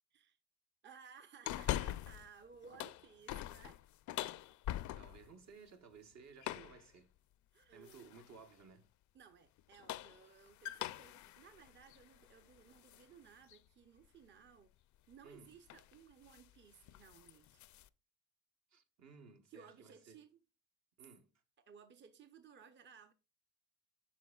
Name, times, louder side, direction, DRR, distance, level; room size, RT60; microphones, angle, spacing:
voice 1, 0.8-3.8 7.5-8.1 9.1-14.7 15.1-17.6 19.5-20.4 21.7-23.1, right 6 dB, 40° right, 0.6 m, -59 dB
sound 1, 1.5-2.3 2.6-5.3 6.4-6.8 7.9-8.3 9.6-13.0 13.5-13.6 15.1-15.4 15.7-15.9 16.3-16.5 16.8-17.9, left 14 dB, 70° left, 0.4 m, -43 dB
voice 2, 5.0-7.1 7.7-8.9 15.2-15.5 18.7-20.2 21.0-21.3, right 5 dB, 65° right, 1.1 m, -58 dB
12.0 x 4.3 x 2.3 m
cardioid pair, 90°, 30 cm